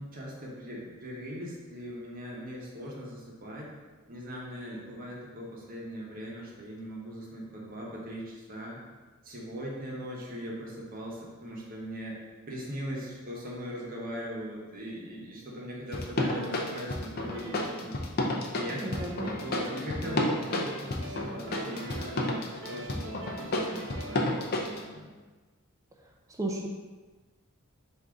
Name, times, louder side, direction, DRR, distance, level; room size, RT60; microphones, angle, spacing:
voice 1, 0.0-3.7 4.1-8.8 9.2-12.2 12.5-18.0 18.5-18.9 19.3-25.1, equal, 40° right, -3 dB, 0.9 m, -40 dB
sound 1, 15.9-24.8, left 1 dB, 45° left, 0.5 m, -31 dB
sound 2, 16.3-18.1 18.6-24.3, right 2 dB, 65° right, 0.6 m, -44 dB
voice 2, 18.8-19.4 20.0-20.3 26.3-26.7, right 1 dB, 15° right, 1 dB, 0.4 m, -34 dB
3.7 x 2.6 x 4.6 m, 1.3 s
head